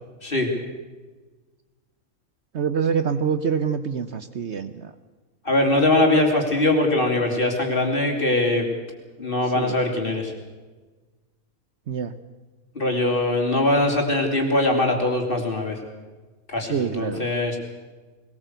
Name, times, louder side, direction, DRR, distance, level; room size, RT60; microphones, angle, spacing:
voice 1, 2.5-4.9 9.4-9.7 11.9-12.1 16.7-17.3, right 6 dB, 55° right, 11 dB, 1.1 m, -26 dB
voice 2, 5.5-8.7 9.2-10.3 12.8-15.8 16.5-17.6, left 2 dB, 40° left, 2 dB, 3.7 m, -22 dB
21.0 x 19.5 x 8.1 m, 1.3 s
omnidirectional pair, 1.5 m